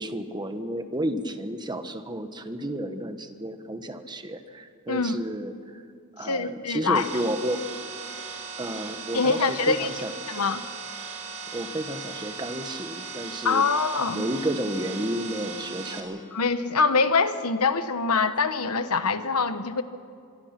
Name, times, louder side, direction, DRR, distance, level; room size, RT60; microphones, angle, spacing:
voice 1, 0.0-5.8 6.2-7.6 8.6-10.1 11.5-13.7 14.1-16.2, right 1 dB, 20° right, 8 dB, 1.3 m, -32 dB
voice 2, 6.2-7.1 9.1-9.9 10.3-10.6 13.4-14.3 16.3-19.8, left 4 dB, 80° left, 11 dB, 1.2 m, -24 dB
sound 1, 6.9-16.0, right 5 dB, 65° right, 4.2 m, -38 dB
25.5 x 23.5 x 6.0 m, 2.4 s
head